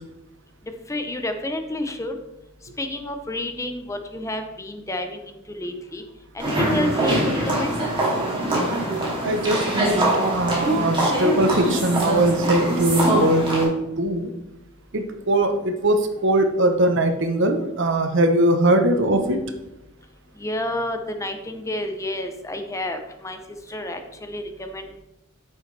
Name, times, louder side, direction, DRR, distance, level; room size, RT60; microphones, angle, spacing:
voice 1, 0.9-2.1 2.8-6.0 6.3-7.8 20.4-23.4 23.7-25.0, left 1 dB, 15° left, 6 dB, 0.6 m, -30 dB
sound 1, 6.4-13.7, right 1 dB, 25° right, 2.5 m, -23 dB
voice 2, 9.2-10.0 10.3-14.3 14.9-19.4, right 1 dB, 60° right, 7 dB, 0.9 m, -21 dB
8.4 x 6.7 x 3.3 m, 0.92 s
head